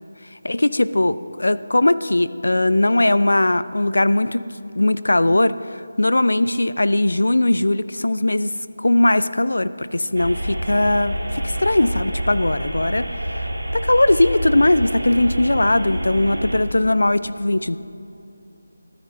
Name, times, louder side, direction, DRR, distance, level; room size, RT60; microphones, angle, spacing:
voice 1, 0.4-4.4 4.7-13.5 13.7-17.8, left 1 dB, 65° left, 16 dB, 0.4 m, -19 dB
sound 1, 10.1-16.6, right 1 dB, 75° right, 1.6 m, -27 dB
24.0 x 9.5 x 2.7 m, 2.8 s
figure-of-eight pair, 160°, 0 cm